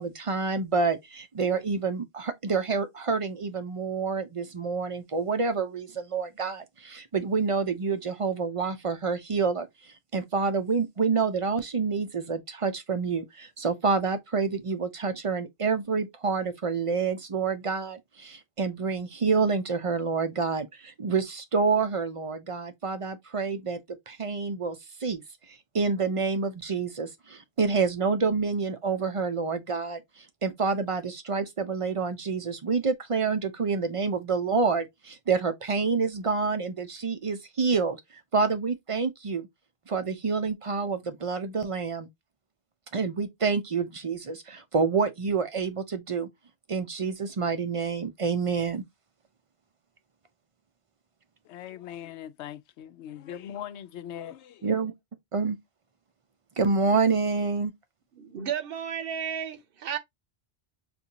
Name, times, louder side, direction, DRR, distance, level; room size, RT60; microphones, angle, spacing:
voice 1, 0.0-39.5 39.9-42.1 42.9-46.3 46.7-48.8 54.6-54.9 55.3-55.6 56.6-57.7, right 4 dB, 45° right, 0.4 m, -28 dB
voice 2, 51.4-54.7, left 10 dB, 85° left, 0.9 m, -40 dB
voice 3, 58.2-60.0, right 8 dB, 60° right, 0.8 m, -33 dB
5.4 x 2.5 x 2.7 m
omnidirectional pair, 1.1 m